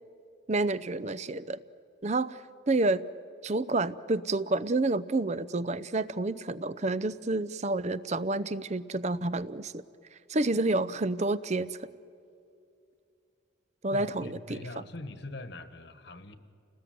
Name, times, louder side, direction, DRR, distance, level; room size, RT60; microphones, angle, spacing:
voice 1, 0.5-1.6 2.0-3.0 3.4-9.8 10.3-11.8 13.8-14.6, right 2 dB, 35° right, 17 dB, 0.6 m, -29 dB
voice 2, 13.9-16.4, left 2 dB, 55° left, 11 dB, 1.5 m, -42 dB
30.0 x 20.0 x 9.4 m, 2.5 s
head